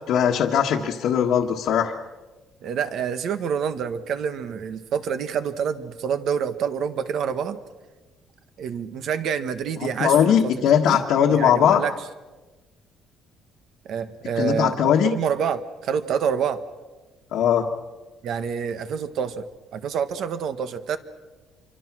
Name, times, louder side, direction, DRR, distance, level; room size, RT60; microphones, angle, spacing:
voice 1, 0.1-2.0 9.8-11.8 14.4-15.1 17.3-17.7, left 8 dB, 60° left, 0 dB, 1.5 m, -20 dB
voice 2, 2.6-7.6 8.6-11.0 11.3-11.9 13.8-16.6 18.2-19.5 19.7-21.0, right 7 dB, 50° right, 10 dB, 1.4 m, -27 dB
27.5 x 24.5 x 6.1 m, 1.2 s
cardioid pair, 175°, 0 cm